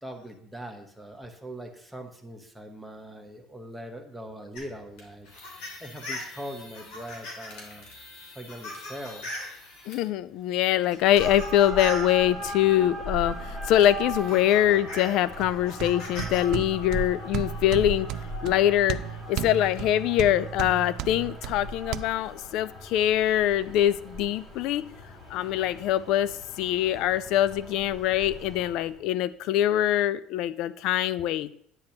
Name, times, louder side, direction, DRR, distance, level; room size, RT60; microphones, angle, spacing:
voice 1, 0.0-5.3 5.5-7.9 8.3-9.3, right 1 dB, ahead, 2 dB, 1.2 m, -41 dB
sound 1, 4.5-10.0 10.8-12.1 13.3-13.4 13.8-16.4 16.7-17.4, left 1 dB, 85° left, 2.9 m, -40 dB
voice 2, 9.9-18.1 18.4-19.0 19.3-24.8 25.3-26.3 26.6-31.5, left 12 dB, 70° left, 17 dB, 0.3 m, -24 dB
sound 2, 11.0-28.9, equal, 30° left, 3.4 m, -38 dB
sound 3, 15.4-22.0, right 10 dB, 65° right, 0.4 m, -35 dB
9.9 x 7.6 x 3.0 m, 0.68 s
cardioid pair, 120°, 0 cm